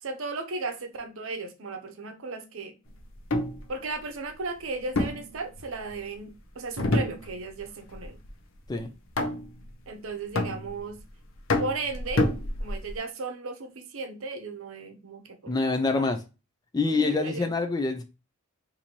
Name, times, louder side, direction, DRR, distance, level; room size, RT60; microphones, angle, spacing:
voice 1, 0.0-2.7 3.7-8.2 9.9-11.0 11.6-12.3 12.6-16.1 16.9-17.5, right 3 dB, 65° right, 0.7 m, -36 dB
sound 1, 3.1-3.6 5.0-6.0 6.8-7.6 7.9-8.3 9.2-9.7 10.4-11.0 11.5-13.0, left 2 dB, 65° left, 0.6 m, -28 dB
voice 2, 15.5-16.2 16.7-18.0, left 3 dB, 20° left, 0.3 m, -26 dB
4.3 x 2.7 x 2.9 m
head